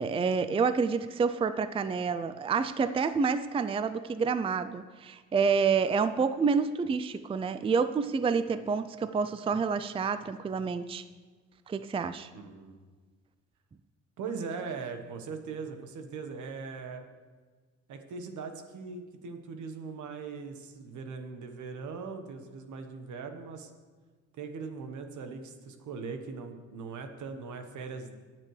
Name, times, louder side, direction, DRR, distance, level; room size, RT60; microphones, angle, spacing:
voice 1, 0.0-11.0 11.7-12.3, right 5 dB, 20° right, 12 dB, 0.4 m, -28 dB
voice 2, 12.3-12.8 14.2-17.0 17.9-23.7 24.3-28.2, right 5 dB, 75° right, 6 dB, 1.3 m, -40 dB
22.5 x 7.6 x 3.3 m, 1.4 s
cardioid pair, 90°, 30 cm